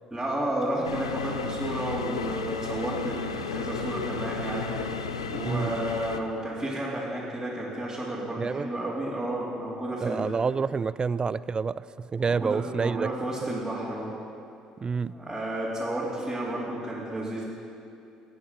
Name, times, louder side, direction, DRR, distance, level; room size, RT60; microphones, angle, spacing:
voice 1, 0.1-10.2 12.2-14.2 15.1-17.4, right 1 dB, 10° right, -9 dB, 2.8 m, -32 dB
sound 1, 0.8-6.2, left 5 dB, 90° left, 0.5 m, -33 dB
voice 2, 8.4-8.7 10.0-13.1 13.4-13.5 14.8-15.1, right 5 dB, 30° right, 18 dB, 0.3 m, -28 dB
15.0 x 8.7 x 5.3 m, 2.6 s
hypercardioid pair, 55°, 3 cm